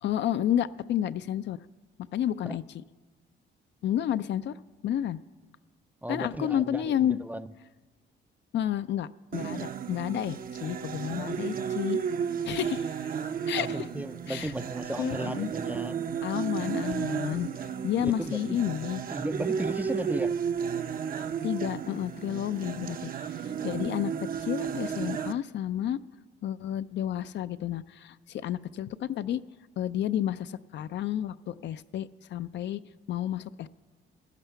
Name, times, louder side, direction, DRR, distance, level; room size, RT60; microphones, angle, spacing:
voice 1, 0.0-1.6 2.1-2.6 3.8-4.5 4.8-5.2 6.1-7.2 8.5-12.0 12.4-12.9 13.5-13.9 14.3-14.5 15.0-15.5 16.2-17.5 17.8-19.0 21.4-23.1 23.4-26.0 26.4-29.4 29.8-32.8 33.1-33.7, left 11 dB, 65° left, 13 dB, 0.5 m, -30 dB
voice 2, 6.0-7.5 13.6-16.0 18.0-18.4 19.1-20.4, right 1 dB, 10° right, 12 dB, 0.4 m, -35 dB
sound 1, 9.3-25.3, right 7 dB, 45° right, 0.6 m, -33 dB
15.5 x 11.0 x 5.7 m, 1.3 s
cardioid pair, 90°, 20 cm